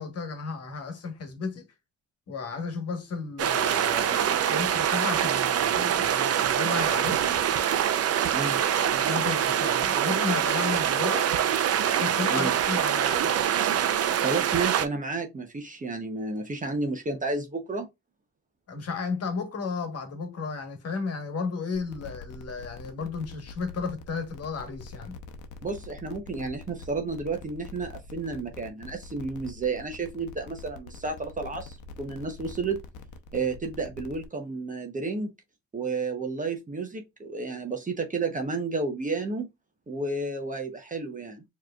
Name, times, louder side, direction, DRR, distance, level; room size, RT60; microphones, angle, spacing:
voice 1, 0.0-1.6 2.3-7.3 8.8-11.3 12.0-13.3 18.7-25.2, left 4 dB, 55° left, 1.4 m, -33 dB
sound 1, 3.4-14.9, right 9 dB, 55° right, 0.6 m, -25 dB
voice 2, 14.2-17.9 25.6-32.8 33.3-35.3 35.7-39.5 39.9-41.4, right 3 dB, 25° right, 0.9 m, -31 dB
sound 2, 21.7-34.2, left 3 dB, 80° left, 0.8 m, -45 dB
4.6 x 3.1 x 2.4 m
cardioid pair, 90°, 30 cm